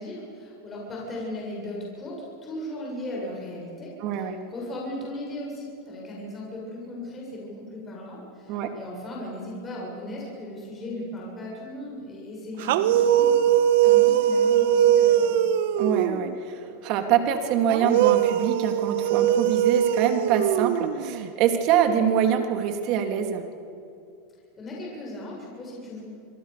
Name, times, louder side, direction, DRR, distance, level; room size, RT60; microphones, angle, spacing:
voice 1, 0.0-15.4 24.6-26.0, left 1 dB, 25° left, -3 dB, 7.6 m, -37 dB
voice 2, 4.0-4.4 8.5-8.7 15.8-23.4, right 8 dB, 50° right, 6 dB, 3.0 m, -25 dB
sound 1, 12.6-16.4 17.7-21.3, right 10 dB, 70° right, 1.3 m, -21 dB
27.5 x 22.5 x 7.0 m, 2.5 s
supercardioid pair, 130°, 0 cm